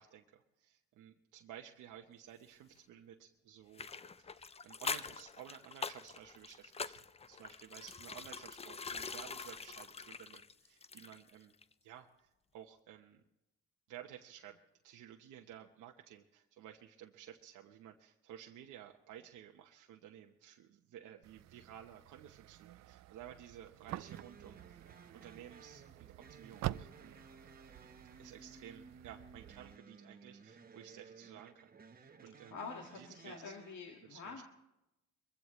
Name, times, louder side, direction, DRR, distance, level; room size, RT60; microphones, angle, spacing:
voice 1, 0.0-3.9 4.2-11.5 11.8-13.2 13.9-24.8 25.1-27.3 28.2-32.6 32.9-33.6 34.0-34.4, right 10 dB, 90° right, 1 dB, 1.0 m, -54 dB
dipping a rag, 3.7-11.3 11.6-11.7, left 5 dB, 20° left, 0.5 m, -44 dB
sound 1, 21.2-29.8, right 14 dB, 60° right, 0.4 m, -48 dB
sound 2, 23.9-33.8, right 4 dB, 30° right, 1.0 m, -58 dB
voice 2, 32.5-34.4, left 5 dB, 70° left, 1 dB, 2.1 m, -47 dB
22.0 x 15.5 x 3.2 m, 0.89 s
cardioid pair, 90°, 30 cm